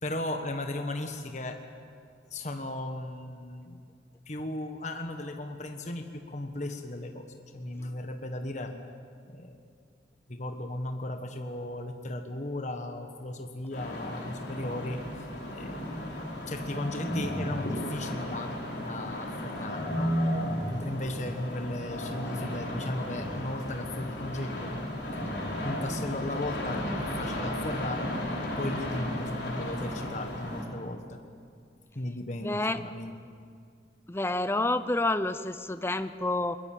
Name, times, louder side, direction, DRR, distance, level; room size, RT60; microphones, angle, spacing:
voice 1, 0.0-1.6 2.3-3.8 4.3-8.8 9.3-9.6 10.3-15.3 15.5-15.8 16.5-20.2 20.6-25.2 25.6-28.2 28.6-31.2 31.9-33.1, left 1 dB, 40° left, 5 dB, 1.4 m, -36 dB
sound 1, 13.7-30.6, equal, 65° left, 4.7 m, -34 dB
voice 2, 32.4-32.8 34.1-36.6, left 2 dB, 15° left, 12 dB, 0.6 m, -28 dB
23.0 x 21.5 x 9.1 m, 2.3 s
head